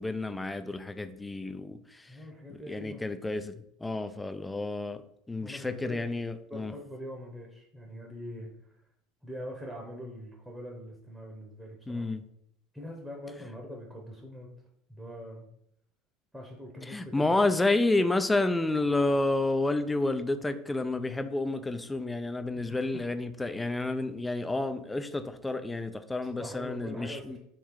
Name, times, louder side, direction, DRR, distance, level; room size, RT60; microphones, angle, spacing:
voice 1, 0.0-2.1 2.7-5.0 5.3-6.7 11.9-12.2 16.9-27.4, left 2 dB, 10° left, 10 dB, 0.4 m, -30 dB
voice 2, 2.1-3.0 5.4-6.0 6.5-8.8 9.2-12.1 12.7-14.5 14.9-15.5 16.3-17.6 22.5-23.0 26.2-27.4, equal, 5° right, -1 dB, 0.9 m, -43 dB
3.7 x 3.1 x 4.6 m, 0.73 s
supercardioid pair, 125°, 0 cm